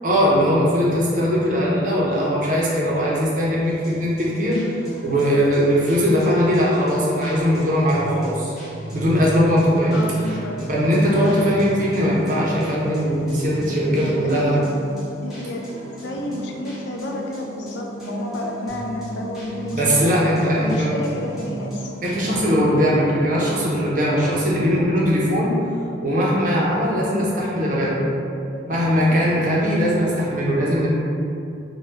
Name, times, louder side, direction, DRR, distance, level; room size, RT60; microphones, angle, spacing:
voice 1, 0.0-4.6 5.0-8.5 8.9-9.9 10.7-14.6 19.7-20.9 22.0-25.5 26.0-28.1 28.7-30.9, equal, 45° right, -5 dB, 0.6 m, -20 dB
sound 1, 3.6-22.4, right 1 dB, ahead, 0.8 m, -36 dB
voice 2, 9.9-10.6 14.0-14.6 15.2-15.6 15.9-20.1 20.5-21.9 28.5-29.2, left 1 dB, 75° left, 1 dB, 0.4 m, -30 dB
3.1 x 2.2 x 3.3 m, 2.5 s
head